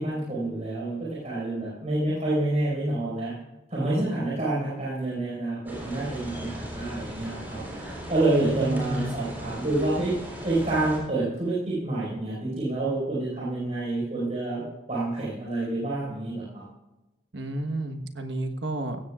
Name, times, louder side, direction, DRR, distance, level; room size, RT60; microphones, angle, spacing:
voice 1, 0.0-3.3 3.7-10.1 10.4-14.6 14.9-16.6, right 2 dB, 35° right, -7 dB, 5.2 m, -28 dB
sound 1, 5.7-11.0, equal, 10° right, 3.8 m, -38 dB
voice 2, 8.4-9.1 17.3-19.0, right 1 dB, 65° right, 6 dB, 1.4 m, -30 dB
17.5 x 15.5 x 2.5 m, 1.0 s
head